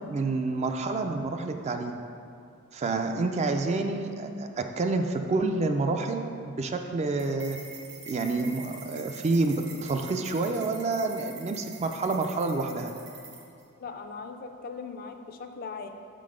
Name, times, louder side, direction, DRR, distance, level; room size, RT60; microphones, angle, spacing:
voice 1, 0.1-2.0 2.7-4.5 4.8-7.6 8.0-12.9, right 3 dB, 30° right, 5 dB, 0.3 m, -28 dB
sound 1, 7.2-13.6, right 4 dB, 55° right, 1.1 m, -45 dB
voice 2, 13.8-15.9, left 4 dB, 45° left, 6 dB, 0.4 m, -39 dB
6.2 x 3.8 x 4.9 m, 2.5 s
head